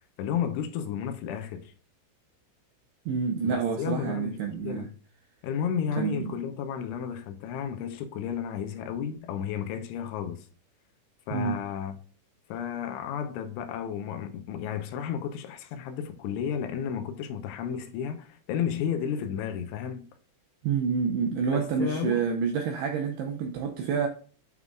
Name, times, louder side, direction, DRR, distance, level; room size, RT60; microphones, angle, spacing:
voice 1, 0.2-1.7 3.5-4.9 5.4-10.5 11.3-11.9 12.5-20.0 21.5-22.3, left 8 dB, 80° left, 3.2 m, -32 dB
voice 2, 3.1-4.9 6.0-6.4 11.3-11.6 20.6-24.1, right 6 dB, 85° right, 2.3 m, -28 dB
9.8 x 5.5 x 2.4 m
omnidirectional pair, 5.7 m